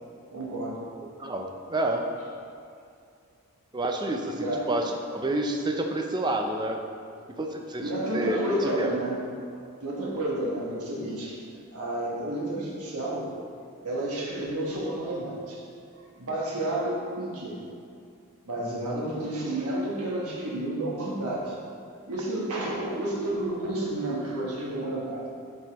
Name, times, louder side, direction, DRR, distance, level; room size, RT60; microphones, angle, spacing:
voice 1, 0.3-0.8 4.3-4.7 7.8-9.2 9.8-11.4 11.7-13.3 13.8-15.6 16.2-17.6 18.4-21.6 22.1-25.3, right 1 dB, 85° right, -4 dB, 1.2 m, -30 dB
voice 2, 1.0-2.1 3.7-6.8 7.4-8.9 18.6-19.1, right 1 dB, 20° right, 3 dB, 0.4 m, -29 dB
7.3 x 5.5 x 2.9 m, 2.4 s
head